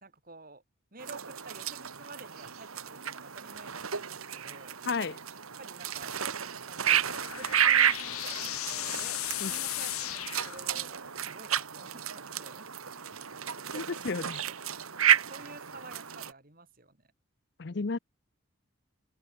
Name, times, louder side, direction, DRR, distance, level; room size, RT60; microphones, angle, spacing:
voice 1, 0.0-0.6 0.9-4.8 5.6-13.2 13.7-14.5 15.3-17.1, right 3 dB, 40° right, 3.9 m, -51 dB
sound 1, 1.0-16.3, right 9 dB, 85° right, 1.8 m, -32 dB
voice 2, 4.8-5.2 9.4-9.5 13.7-14.4 17.6-18.0, left 4 dB, 55° left, 0.6 m, -32 dB
sound 2, 6.6-11.2, left 14 dB, 90° left, 0.8 m, -37 dB
head